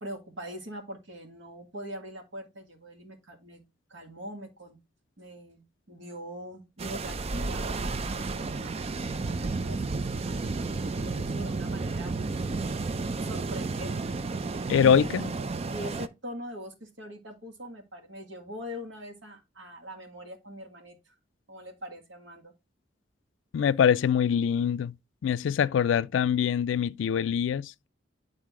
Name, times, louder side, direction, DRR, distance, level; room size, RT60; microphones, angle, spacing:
voice 1, 0.0-3.6 3.9-4.8 5.2-10.4 10.9-12.1 12.7-14.3 14.8-15.1 15.7-21.2 21.5-22.5, equal, 75° right, 1.8 m, -42 dB
sound 1, 6.8-16.1, right 3 dB, 35° right, 0.4 m, -32 dB
voice 2, 14.7-15.3 23.5-24.9 25.2-27.9, left 8 dB, 80° left, 0.3 m, -24 dB
9.3 x 4.0 x 3.6 m
head